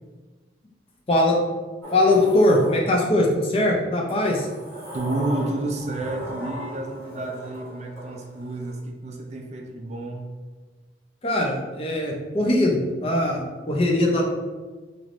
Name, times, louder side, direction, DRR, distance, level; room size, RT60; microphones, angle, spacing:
Sliding door, 1.8-3.3 4.1-8.7, equal, 15° left, 1.3 m, -38 dB
voice 1, 1.9-4.5 11.2-14.2, left 1 dB, 30° left, -1 dB, 0.5 m, -21 dB
voice 2, 4.9-10.3, right 2 dB, 40° right, 2 dB, 0.3 m, -30 dB
3.3 x 3.0 x 2.5 m, 1.3 s
head